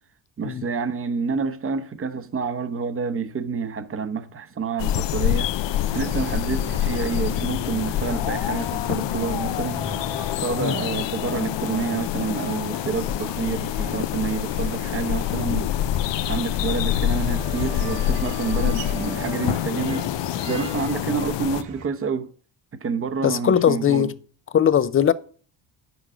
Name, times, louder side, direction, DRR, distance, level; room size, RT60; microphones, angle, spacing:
voice 1, 0.4-5.5 5.9-9.8 10.3-15.7 16.2-20.1 20.4-22.3 22.7-24.1, right 5 dB, 30° right, 0.9 m, -28 dB
sound 1, 4.8-21.6, left 12 dB, 70° left, 0.6 m, -26 dB
sound 2, 5.9-21.9, right 5 dB, 90° right, 2.4 m, -39 dB
voice 2, 23.2-24.1 24.5-25.1, left 9 dB, 30° left, 0.5 m, -19 dB
10.5 x 7.0 x 4.9 m
cardioid pair, 145°, 45 cm